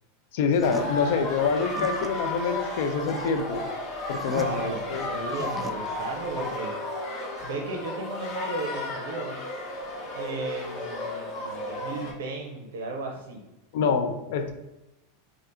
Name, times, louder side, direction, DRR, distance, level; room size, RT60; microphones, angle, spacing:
voice 1, 0.3-3.6 4.1-5.1 13.7-14.5, left 5 dB, 70° left, 7 dB, 0.4 m, -26 dB
sound 1, 0.5-6.6, left 1 dB, ahead, 0.3 m, -41 dB
sound 2, 0.6-12.1, left 2 dB, 40° left, 0.8 m, -33 dB
voice 2, 4.1-6.7 7.4-9.4 10.1-13.4, right 2 dB, 85° right, 1 dB, 0.5 m, -35 dB
2.7 x 2.4 x 3.4 m, 0.97 s
supercardioid pair, 120°, 0 cm